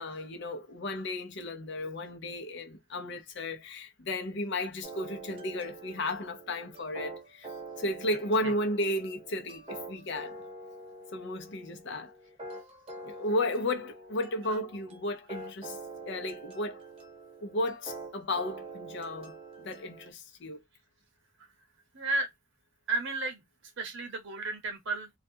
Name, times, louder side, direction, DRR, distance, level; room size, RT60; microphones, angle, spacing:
voice 1, 0.0-7.5 7.8-10.4 11.1-12.1 13.0-15.8 16.1-16.8 17.4-20.6, left 1 dB, 55° left, 0.7 m, -34 dB
sound 1, 4.8-20.1, right 3 dB, 25° right, 0.8 m, -45 dB
voice 2, 21.9-22.3 22.9-23.4 23.8-25.2, right 3 dB, 60° right, 0.8 m, -33 dB
2.4 x 2.2 x 2.6 m
head